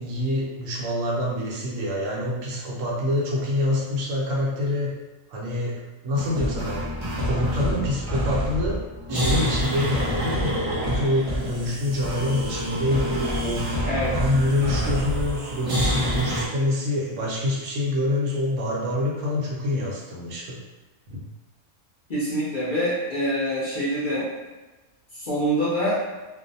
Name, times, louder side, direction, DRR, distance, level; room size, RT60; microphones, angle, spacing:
voice 1, 0.0-4.9 5.3-6.8 7.2-8.8 9.1-13.7 14.1-20.6 21.1-21.2, left 1 dB, 75° right, -3 dB, 0.9 m, -26 dB
sound 1, 6.1-16.5, equal, 50° right, 0.4 m, -27 dB
voice 2, 13.8-14.2 22.1-24.3 25.1-26.0, equal, 50° left, -9 dB, 0.6 m, -25 dB
2.5 x 2.1 x 2.6 m, 1.2 s
omnidirectional pair, 1.4 m